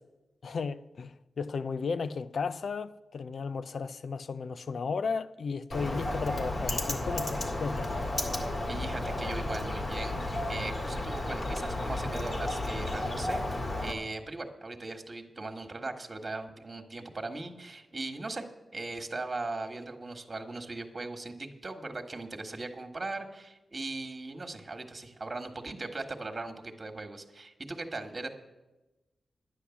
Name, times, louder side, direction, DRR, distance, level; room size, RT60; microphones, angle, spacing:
voice 1, 0.4-7.9, left 5 dB, 75° left, 0.5 m, -34 dB
Bird, 5.7-13.9, left 1 dB, 50° left, 1.9 m, -33 dB
voice 2, 8.7-13.4 13.8-18.5 18.7-28.3, right 2 dB, 40° right, 1.6 m, -39 dB
10.0 x 9.9 x 7.1 m
cardioid pair, 50°, 0 cm